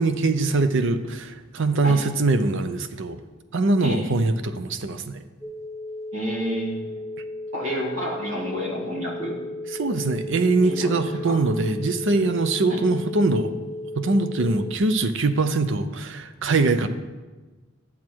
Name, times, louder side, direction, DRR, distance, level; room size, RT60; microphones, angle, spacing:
voice 1, 0.0-3.2 3.5-5.2 9.8-13.6 14.0-16.9, right 3 dB, 65° right, 10 dB, 0.6 m, -22 dB
sound 1, 5.4-14.8, left 2 dB, 10° right, 1.3 m, -35 dB
voice 2, 6.1-7.0 7.5-9.3 10.6-10.9 11.3-11.4 12.7-12.8, equal, 85° right, -2 dB, 2.4 m, -29 dB
10.5 x 7.4 x 4.6 m, 1.3 s
head